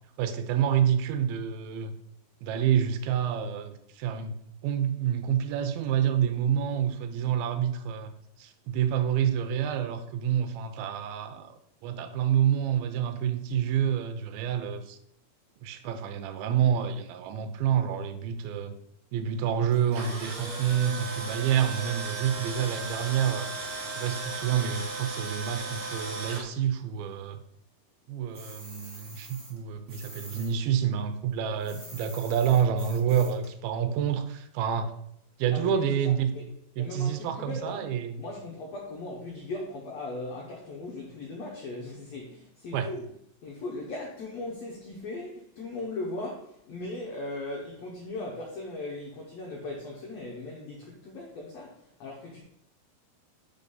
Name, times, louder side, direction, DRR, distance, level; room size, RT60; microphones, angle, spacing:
voice 1, 0.2-1.9 2.4-4.4 4.6-8.1 8.4-11.5 11.8-15.0 15.6-18.7 19.1-23.5 23.9-27.4 28.1-34.9 35.4-36.3 36.8-38.2 42.7-42.9, right 9 dB, 80° right, 2.5 m, -28 dB
Tools, 19.7-26.4, right 3 dB, 55° right, 2.0 m, -36 dB
sound 1, 28.3-30.5 30.8-33.5, right 1 dB, 30° right, 0.9 m, -46 dB
voice 2, 35.5-36.5 36.8-43.1 43.4-52.4, left 2 dB, 85° left, 1.4 m, -38 dB
5.3 x 4.7 x 5.4 m
omnidirectional pair, 4.4 m